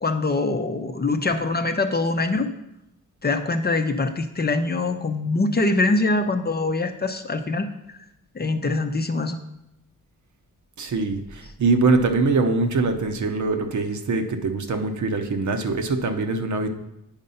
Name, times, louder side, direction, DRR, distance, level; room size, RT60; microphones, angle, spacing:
voice 1, 0.0-2.5 3.2-7.7 8.3-9.4, left 3 dB, 30° left, 7 dB, 0.6 m, -23 dB
voice 2, 10.8-16.7, right 3 dB, 65° right, 6 dB, 0.9 m, -23 dB
8.9 x 5.3 x 5.5 m, 0.85 s
wide cardioid pair, 110°, 32 cm